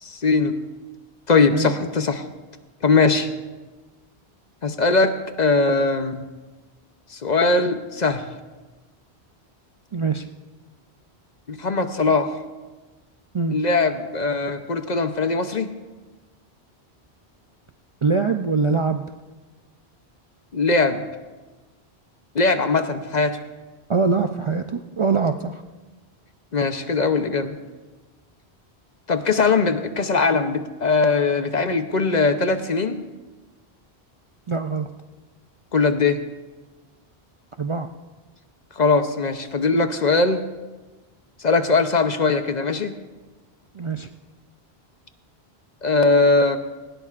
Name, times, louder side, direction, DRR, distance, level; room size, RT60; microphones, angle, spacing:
voice 1, 0.0-0.5 1.3-2.2 2.8-3.3 4.6-6.3 7.1-8.2 11.5-12.3 13.5-15.7 20.5-21.0 22.3-23.4 26.5-27.6 29.1-33.0 35.7-36.2 38.7-40.4 41.4-42.9 45.8-46.6, left 3 dB, 45° left, 8 dB, 0.8 m, -20 dB
voice 2, 9.9-10.3 13.3-13.6 18.0-19.0 23.9-25.6 34.5-34.9 37.6-37.9 43.7-44.1, right 4 dB, 45° right, 6 dB, 0.4 m, -23 dB
19.0 x 18.0 x 2.5 m, 1.2 s
omnidirectional pair, 1.1 m